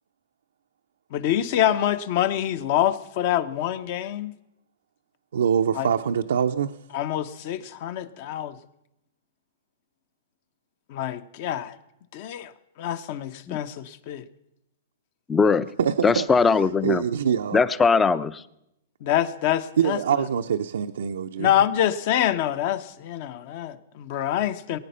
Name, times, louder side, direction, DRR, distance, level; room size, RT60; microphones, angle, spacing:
voice 1, 1.1-4.3 5.8-5.9 6.9-8.5 10.9-11.7 12.1-12.5 12.8-14.2 19.0-20.0 21.4-24.8, left 11 dB, 50° left, 12 dB, 0.9 m, -26 dB
voice 2, 5.3-6.8 15.8-16.3 16.6-17.6 19.8-21.5, right 8 dB, 85° right, 6 dB, 0.6 m, -24 dB
voice 3, 15.3-15.7 16.0-17.0 17.5-18.4, left 5 dB, 10° left, 17 dB, 0.5 m, -20 dB
20.5 x 9.4 x 5.6 m, 0.85 s
hypercardioid pair, 145°, 0 cm